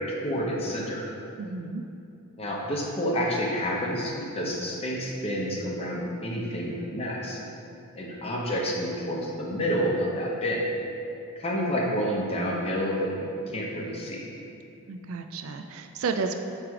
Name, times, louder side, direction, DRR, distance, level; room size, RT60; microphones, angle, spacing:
voice 1, 0.2-1.0 2.4-7.4 8.0-10.6 11.4-14.2, equal, 25° left, -3 dB, 0.8 m, -29 dB
voice 2, 1.4-1.8 14.9-16.3, right 4 dB, 65° right, 6 dB, 0.4 m, -32 dB
7.6 x 3.3 x 4.7 m, 2.7 s
head